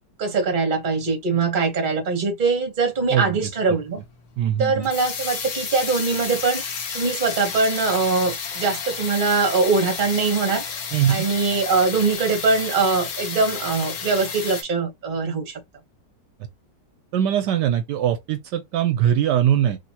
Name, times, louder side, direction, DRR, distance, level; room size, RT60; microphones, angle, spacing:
voice 1, 0.2-4.0 4.6-6.6 6.9-10.6 11.1-15.6, right 4 dB, 35° right, 1.0 m, -22 dB
sound 1, 3.0-14.6, left 5 dB, 55° left, 1.0 m, -32 dB
voice 2, 4.4-4.9 10.9-11.3 17.1-19.8, right 10 dB, 75° right, 1.2 m, -21 dB
3.4 x 2.8 x 2.8 m
omnidirectional pair, 1.9 m